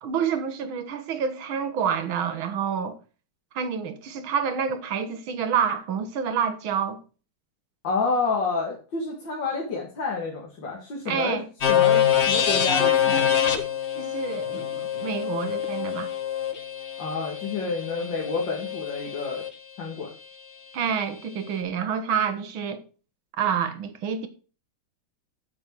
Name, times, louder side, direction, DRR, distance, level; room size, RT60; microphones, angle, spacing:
voice 1, 0.0-3.0 3.5-7.0 11.1-11.5 14.0-16.1 20.7-22.8 23.4-24.3, right 7 dB, 70° right, 2.0 m, -28 dB
voice 2, 7.8-11.4 11.7-13.4 17.0-19.4 19.8-20.1, left 4 dB, 60° left, 2.7 m, -29 dB
sound 1, 11.6-19.5, left 9 dB, 40° left, 1.0 m, -25 dB
7.3 x 6.5 x 7.5 m
omnidirectional pair, 2.3 m